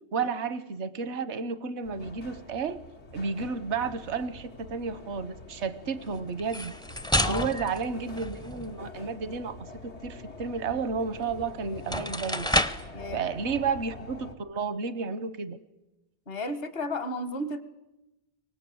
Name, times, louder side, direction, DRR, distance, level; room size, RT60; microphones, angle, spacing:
voice 1, 0.1-2.8 3.1-6.7 7.3-12.5 13.1-15.6, right 5 dB, 85° right, 14 dB, 1.3 m, -32 dB
sound 1, 1.8-14.4, left 2 dB, 80° left, 1.9 m, -45 dB
sound 2, 6.4-8.8 11.2-11.3 11.8-13.0, left 1 dB, 5° left, 0.5 m, -29 dB
voice 2, 7.2-7.5 12.9-13.2 16.3-17.6, left 1 dB, 60° left, 12 dB, 1.6 m, -33 dB
24.0 x 19.5 x 7.8 m, 0.99 s
omnidirectional pair, 1.1 m